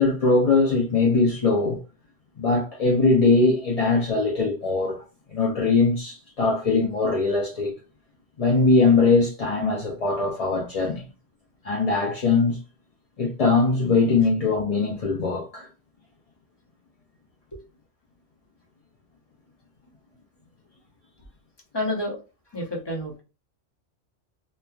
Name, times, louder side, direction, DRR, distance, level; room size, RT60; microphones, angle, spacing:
voice 1, 0.0-1.8 2.4-5.0 5.3-7.8 8.4-11.1 11.6-12.6 13.2-15.7, left 3 dB, 45° left, 0.5 m, -21 dB
voice 2, 21.7-22.2 22.5-23.2, left 1 dB, 25° left, 0.9 m, -29 dB
2.9 x 2.3 x 2.3 m
omnidirectional pair, 1.2 m